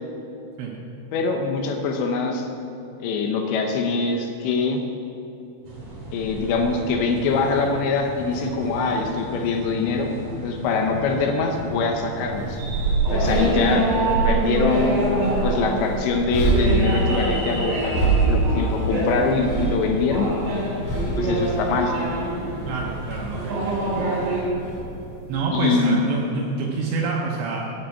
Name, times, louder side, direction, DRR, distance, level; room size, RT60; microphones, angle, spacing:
voice 1, 1.1-2.4 3.0-4.8 6.1-10.1 10.4-12.6 13.1-13.9 14.2-15.0 15.4-20.3 21.1-21.9 25.5-26.0, left 4 dB, 75° left, 3 dB, 3.0 m, -23 dB
sound 1, 5.7-24.4, right 2 dB, 50° right, 4.5 m, -27 dB
sound 2, 12.3-25.4, right 3 dB, 40° left, 3.4 m, -27 dB
voice 2, 22.7-23.9 25.3-27.6, right 4 dB, 75° right, -2 dB, 3.1 m, -27 dB
9.0 x 8.8 x 8.4 m, 2.9 s
omnidirectional pair, 5.5 m